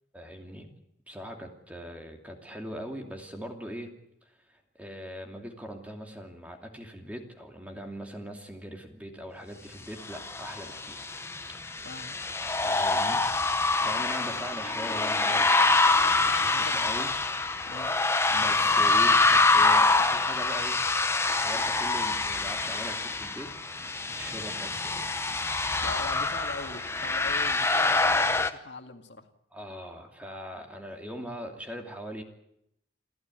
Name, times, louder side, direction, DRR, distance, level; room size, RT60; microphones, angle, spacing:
voice 1, 0.1-0.7 1.1-3.9 4.2-11.1 11.5-11.9 12.6-13.2 13.8-16.1 16.3-17.1 18.3-20.8 21.2-23.5 23.9-25.0 27.9-28.0 29.5-32.2, equal, 10° right, 3 dB, 2.7 m, -41 dB
sound 1, 10.1-28.5, left 3 dB, 15° left, 0.9 m, -25 dB
voice 2, 11.8-12.2 16.0-16.9 17.7-18.0 25.8-29.3, left 3 dB, 75° left, 6 dB, 2.1 m, -41 dB
28.5 x 13.5 x 9.2 m, 0.78 s
head